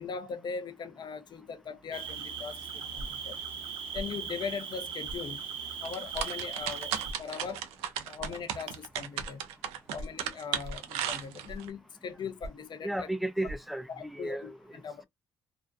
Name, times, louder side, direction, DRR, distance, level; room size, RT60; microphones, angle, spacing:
voice 1, 0.0-3.4 3.9-5.4 5.8-6.9 7.2-7.6 8.1-9.4 9.9-13.1 13.9-15.1, left 6 dB, 50° left, 0.5 m, -40 dB
Cricket, 1.9-7.1, right 7 dB, 70° right, 0.8 m, -39 dB
sound 1, 3.0-3.3 3.9-4.2 5.1-5.2 6.1-6.3 7.0-7.3 8.2-8.3 9.2-9.3 10.0-10.2 10.6-10.9 11.5-11.7 12.4-12.7 13.4-13.6, equal, 35° right, 0.7 m, -41 dB
sound 2, 5.8-11.7, right 10 dB, 90° right, 0.4 m, -35 dB
voice 2, 12.8-14.6, right 1 dB, ahead, 0.3 m, -34 dB
2.5 x 2.2 x 2.2 m
supercardioid pair, 60°, 10 cm